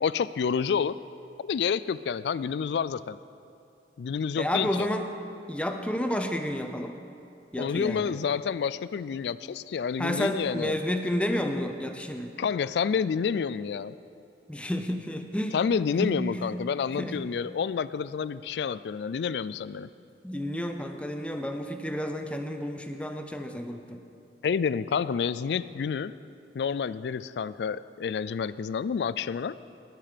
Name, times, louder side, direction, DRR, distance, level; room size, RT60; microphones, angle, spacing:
voice 1, 0.0-0.9 1.4-3.2 4.0-4.9 7.6-10.7 12.4-14.0 15.5-19.9 24.4-26.1 26.5-29.6, left 6 dB, 70° left, 17 dB, 0.3 m, -29 dB
voice 2, 4.4-5.1 5.5-7.0 7.5-8.2 10.0-12.3 14.5-15.6 16.0-16.6 17.0-17.2 20.2-24.0, left 1 dB, 5° left, 5 dB, 0.6 m, -31 dB
19.5 x 7.6 x 5.1 m, 2.6 s
head